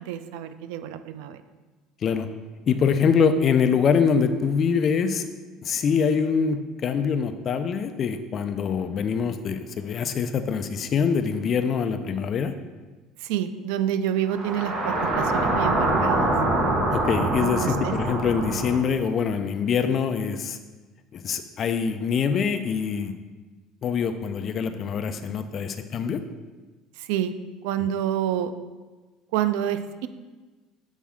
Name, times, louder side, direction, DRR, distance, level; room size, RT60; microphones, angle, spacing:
voice 1, 0.0-1.4 13.2-16.3 17.4-18.0 27.0-27.3 27.6-28.5 29.3-30.1, right 10 dB, 85° right, 11 dB, 0.4 m, -28 dB
voice 2, 2.7-5.3 5.6-12.5 16.9-20.6 21.1-23.2 23.8-26.2, left 6 dB, 30° left, 9 dB, 0.3 m, -24 dB
sound 1, 14.3-18.8, right 2 dB, 40° right, 1.1 m, -24 dB
7.2 x 4.2 x 3.6 m, 1.3 s
cardioid pair, 165°, 0 cm